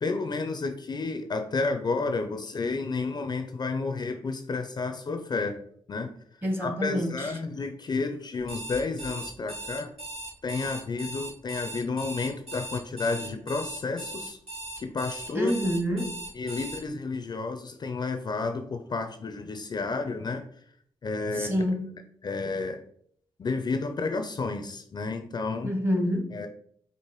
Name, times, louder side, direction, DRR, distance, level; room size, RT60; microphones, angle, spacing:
voice 1, 0.0-5.6 5.9-6.1 6.6-9.9 10.4-14.4 14.8-15.5 16.3-20.4 21.0-21.7 22.2-22.8 23.4-25.7 26.3-26.5, left 3 dB, 40° left, 0.4 m, -31 dB
voice 2, 6.4-7.3 15.3-16.2 21.3-21.9 25.6-26.4, equal, 20° right, 0.9 m, -27 dB
Alarm, 8.4-16.8, right 1 dB, 70° right, 1.7 m, -39 dB
4.7 x 2.5 x 3.0 m
cardioid pair, 75°, 11 cm